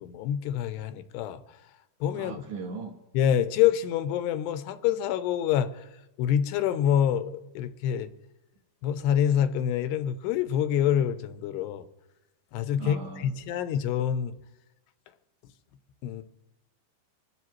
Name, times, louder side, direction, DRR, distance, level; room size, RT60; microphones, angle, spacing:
voice 1, 0.0-1.4 2.0-2.4 3.1-5.7 6.2-8.1 8.8-11.8 12.5-14.3 16.0-16.2, left 9 dB, 85° left, 2.8 m, -26 dB
voice 2, 2.2-2.9 12.8-13.3, right 4 dB, 65° right, 2.1 m, -38 dB
26.0 x 12.5 x 3.1 m
omnidirectional pair, 4.8 m